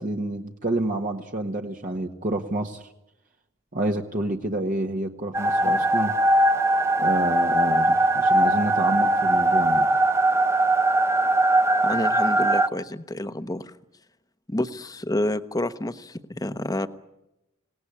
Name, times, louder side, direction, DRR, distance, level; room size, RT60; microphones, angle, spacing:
voice 1, 0.0-2.8 3.7-6.1 7.0-9.9, right 1 dB, 40° right, 2 dB, 1.4 m, -28 dB
sound 1, 5.3-12.7, right 1 dB, 15° right, 0.9 m, -20 dB
voice 2, 11.8-13.7 14.5-16.9, left 1 dB, 20° left, 11 dB, 1.0 m, -29 dB
26.5 x 18.5 x 10.0 m, 0.94 s
head